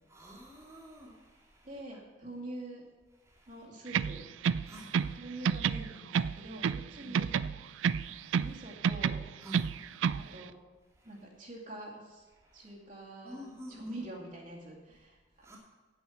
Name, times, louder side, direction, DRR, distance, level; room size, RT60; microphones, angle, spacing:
voice 1, 0.1-1.7 3.3-3.6 4.6-5.1 7.0-7.1 7.8-8.4 9.4-10.3 11.0-11.1 12.4-12.7 13.2-14.0 15.4-15.6, equal, 15° right, -5 dB, 2.2 m, -50 dB
voice 2, 1.6-2.8 3.5-4.3 5.0-7.4 8.4-9.2 10.3-10.5 11.0-12.3 12.5-15.2, right 1 dB, 40° right, -3 dB, 2.3 m, -45 dB
sound 1, 3.9-5.2 5.4-6.9 7.1-8.6 8.8-10.3, right 7 dB, 75° right, 0.3 m, -30 dB
8.9 x 8.8 x 7.1 m, 1.3 s
head